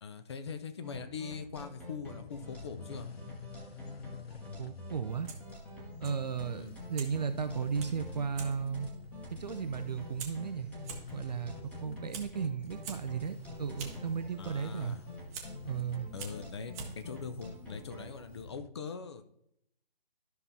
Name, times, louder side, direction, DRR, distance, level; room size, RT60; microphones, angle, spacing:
voice 1, 0.0-3.1 6.5-6.8 14.4-15.1 16.1-19.2, left 5 dB, 30° left, 10 dB, 0.5 m, -42 dB
sound 1, 0.8-18.2, left 1 dB, 5° left, 1.0 m, -48 dB
sound 2, 2.1-18.7, left 5 dB, 90° left, 0.6 m, -49 dB
voice 2, 4.6-5.3 6.0-8.9 9.4-10.7 11.1-11.5 11.8-15.0 15.6-16.1, right 6 dB, 45° right, 8 dB, 0.4 m, -35 dB
Fire, 5.1-18.5, right 6 dB, 15° right, 0.8 m, -50 dB
12.5 x 5.7 x 2.7 m, 0.77 s
figure-of-eight pair, 145°, 29 cm